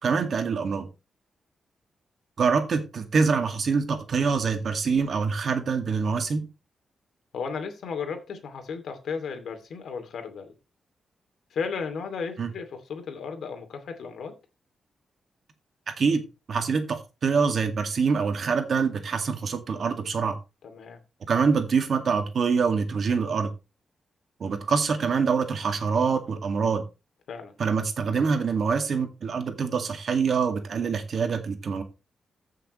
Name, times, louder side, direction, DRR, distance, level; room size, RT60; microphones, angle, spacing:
voice 1, 0.0-0.9 2.4-6.5 12.4-12.5 15.9-16.2 16.5-20.4 21.3-23.5 24.4-26.8 27.6-31.8, right 5 dB, 50° right, 2.1 m, -25 dB
voice 2, 7.3-10.5 11.5-14.4 20.6-21.0 27.3-27.5, left 5 dB, 75° left, 2.7 m, -34 dB
15.0 x 6.6 x 3.2 m
wide cardioid pair, 145°, 0 cm